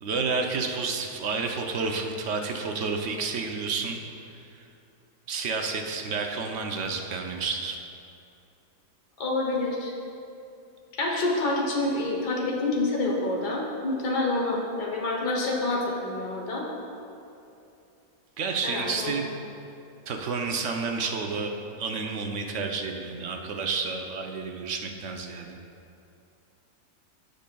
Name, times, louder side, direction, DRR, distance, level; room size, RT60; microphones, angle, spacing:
voice 1, 0.0-4.0 5.3-7.8 18.4-19.3 20.1-21.5 21.8-25.6, right 4 dB, 60° right, 3 dB, 0.8 m, -30 dB
voice 2, 9.2-9.9 11.0-16.6 18.6-19.1, left 2 dB, 80° left, -2 dB, 1.6 m, -27 dB
15.5 x 5.2 x 2.3 m, 2.7 s
omnidirectional pair, 1.7 m